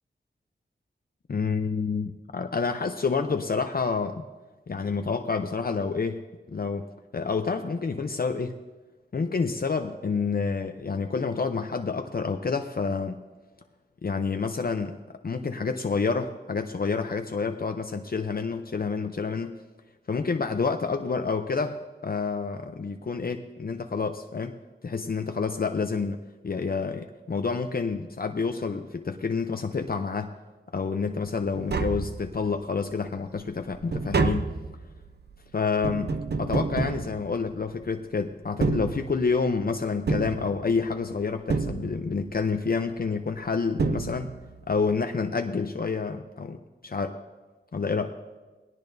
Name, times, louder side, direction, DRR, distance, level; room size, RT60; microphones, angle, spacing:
voice 1, 1.3-4.3 4.7-6.2 6.5-8.6 9.1-13.2 14.0-15.0 15.2-19.6 20.1-24.6 24.8-26.2 26.4-30.3 30.7-34.5 35.5-44.3 44.7-47.2 47.7-48.2, left 4 dB, 50° left, 6 dB, 0.6 m, -28 dB
Tap, 31.3-31.4 31.5-32.7 33.1-37.8 38.4-39.5 40.1-41.0 41.5-42.3 43.4-43.5 43.8-44.6 44.9-45.0, right 4 dB, 60° right, 0.7 m, -29 dB
19.5 x 17.5 x 2.7 m, 1.2 s
wide cardioid pair, 70°, 19 cm